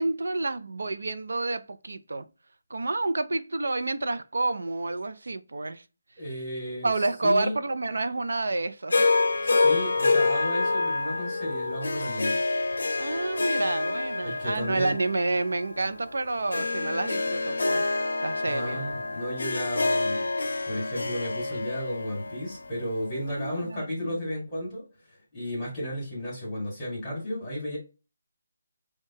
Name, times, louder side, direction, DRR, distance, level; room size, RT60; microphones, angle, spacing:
voice 1, 0.0-2.3 2.7-5.8 6.8-9.1 9.6-9.7 13.0-17.9 18.2-18.8 23.3-24.3, right 2 dB, 85° right, 0.4 m, -29 dB
voice 2, 6.2-7.5 9.4-12.4 14.2-14.9 18.4-24.8 25.3-27.8, equal, 15° left, 1.5 m, -33 dB
Harp, 8.9-23.3, left 3 dB, 80° left, 0.5 m, -27 dB
4.5 x 2.2 x 2.8 m
hypercardioid pair, 175°, 0 cm